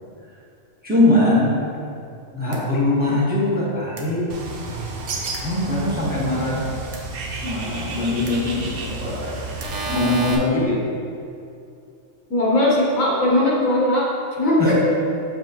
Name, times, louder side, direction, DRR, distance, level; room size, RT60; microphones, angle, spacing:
voice 1, 0.8-1.5 2.3-4.2 5.4-6.7 7.4-9.4 9.8-10.8 14.6-14.8, left 1 dB, 5° right, -8 dB, 1.3 m, -21 dB
sound 1, 2.5-2.6 4.0-4.1 5.3-5.4 6.9-7.0 8.3-8.4 9.6-10.4, right 3 dB, 70° right, 1.1 m, -30 dB
Bird, 4.3-9.9, right 3 dB, 55° right, 0.8 m, -32 dB
voice 2, 12.3-14.1 14.4-14.6, left 1 dB, 80° left, -4 dB, 1.7 m, -19 dB
6.8 x 6.0 x 3.0 m, 2.5 s
omnidirectional pair, 1.4 m